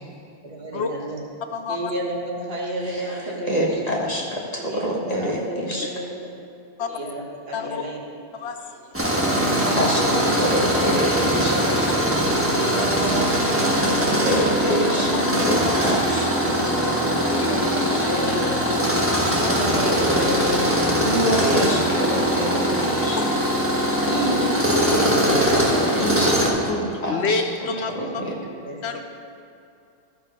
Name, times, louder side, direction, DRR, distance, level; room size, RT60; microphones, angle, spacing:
voice 1, 0.4-1.2 1.7-3.9 4.6-6.2 6.9-8.0 9.1-10.7 11.1-11.8 12.5-14.3 14.9-15.6 15.9-16.1 16.4-16.7 17.4-18.8 19.4-20.8 21.3-22.5 24.0-24.5 24.8-26.3 27.9-29.0, right 1 dB, 60° right, -2 dB, 1.7 m, -31 dB
voice 2, 1.5-1.9 6.8-6.9 7.5-7.8 8.3-9.1 10.8-10.9 14.6-15.2 17.0-17.1 19.4-19.6 21.3-21.4 23.2-23.3 27.1-28.0 28.8-29.0, left 5 dB, 75° left, 6 dB, 0.9 m, -29 dB
voice 3, 2.9-5.9 9.8-10.1 10.3-11.7 14.2-18.0 21.0-23.2 26.0-26.4 26.6-27.4 27.9-28.3, equal, 35° left, -2 dB, 1.6 m, -27 dB
Tools, 8.9-26.5, equal, 10° right, 1.5 m, -21 dB
13.0 x 6.8 x 5.1 m, 2.5 s
omnidirectional pair, 1.1 m